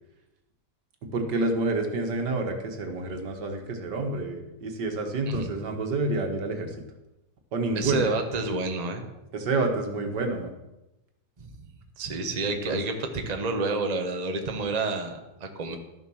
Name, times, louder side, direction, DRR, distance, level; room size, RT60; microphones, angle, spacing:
voice 1, 1.1-6.7 7.5-8.1 9.3-10.5 12.5-12.8, right 2 dB, 80° right, 5 dB, 2.1 m, -28 dB
voice 2, 7.7-9.0 11.4-11.5 12.0-15.8, right 3 dB, 25° right, 5 dB, 1.1 m, -29 dB
12.5 x 7.0 x 6.3 m, 0.95 s
omnidirectional pair, 1.8 m